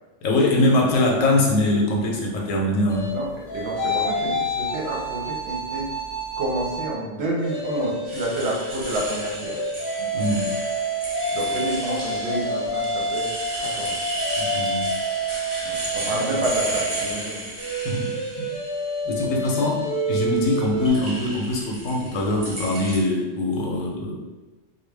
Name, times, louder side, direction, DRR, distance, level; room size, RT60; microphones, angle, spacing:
voice 1, 0.2-3.1 10.0-10.5 14.4-14.9 17.8-18.5 19.0-19.8 20.1-24.1, left 2 dB, 80° left, -1 dB, 1.0 m, -23 dB
sound 1, 2.9-6.9 7.3-20.9, right 1 dB, 60° left, 0.6 m, -28 dB
voice 2, 3.1-5.9 6.4-9.6 11.3-13.3 13.6-14.0 15.6-17.4 19.2-19.7, right 1 dB, 65° right, -2 dB, 0.8 m, -29 dB
sound 2, 8.1-18.7 19.2-19.8 20.3-23.0, right 1 dB, 30° right, 0.6 m, -34 dB
2.3 x 2.2 x 3.3 m, 1.2 s
omnidirectional pair, 1.3 m